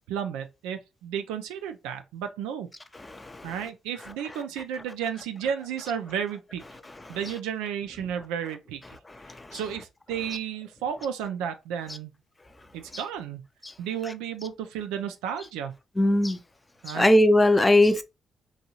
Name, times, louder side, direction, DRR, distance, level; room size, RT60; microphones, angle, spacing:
voice 1, 0.1-2.7 3.4-6.6 7.1-8.8 9.5-12.2 12.7-13.4 13.8-15.7 16.8-17.1, right 8 dB, 90° right, 0.3 m, -33 dB
voice 2, 16.0-16.4 16.9-18.0, left 1 dB, 25° left, 0.5 m, -19 dB
2.7 x 2.3 x 2.9 m
supercardioid pair, 50°, 0 cm